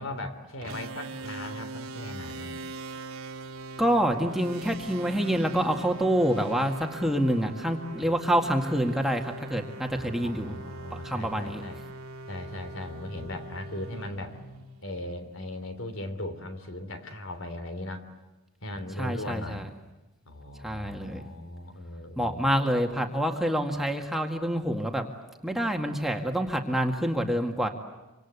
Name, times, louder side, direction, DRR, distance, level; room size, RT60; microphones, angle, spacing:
voice 1, 0.0-2.6 8.0-8.2 9.9-11.8 12.3-14.4 14.8-18.0 18.6-19.7 20.3-22.5, left 1 dB, 65° left, 8 dB, 3.3 m, -38 dB
sound 1, 0.6-15.2, right 3 dB, 80° right, 2.0 m, -42 dB
voice 2, 3.8-10.6 10.9-11.6 19.0-19.7 20.6-21.2 22.2-25.0 25.4-27.7, equal, ahead, 2 dB, 1.9 m, -27 dB
27.0 x 26.0 x 8.3 m, 1.1 s
head